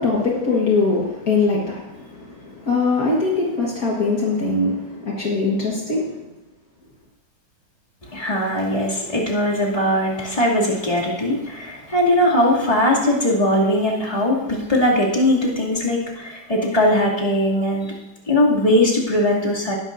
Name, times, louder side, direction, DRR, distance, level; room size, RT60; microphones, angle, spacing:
voice 1, 0.0-1.8 2.7-6.1, left 3 dB, 55° left, -2 dB, 2.0 m, -21 dB
voice 2, 8.1-17.9 18.3-19.7, left 1 dB, 20° left, -5 dB, 2.6 m, -20 dB
19.0 x 11.5 x 2.7 m, 1.0 s
omnidirectional pair, 1.9 m